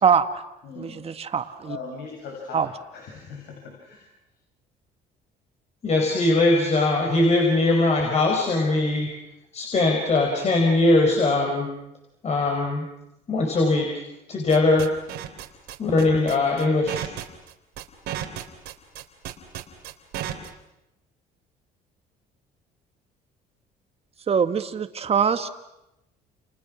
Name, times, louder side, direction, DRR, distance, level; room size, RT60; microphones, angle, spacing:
voice 1, 0.0-0.4 0.8-1.8 2.5-2.7 24.3-25.5, right 7 dB, 35° right, 9 dB, 1.8 m, -23 dB
voice 2, 0.6-1.2 1.6-4.0, left 4 dB, 80° left, 0 dB, 7.8 m, -40 dB
voice 3, 5.8-9.1 9.5-11.7 12.2-12.8 13.3-14.0 14.3-14.9 15.8-17.1, left 2 dB, 40° left, 1 dB, 5.0 m, -21 dB
sound 1, 14.5-20.5, right 12 dB, 80° right, 3.4 m, -33 dB
30.0 x 29.5 x 6.3 m, 0.90 s
cardioid pair, 110°, 17 cm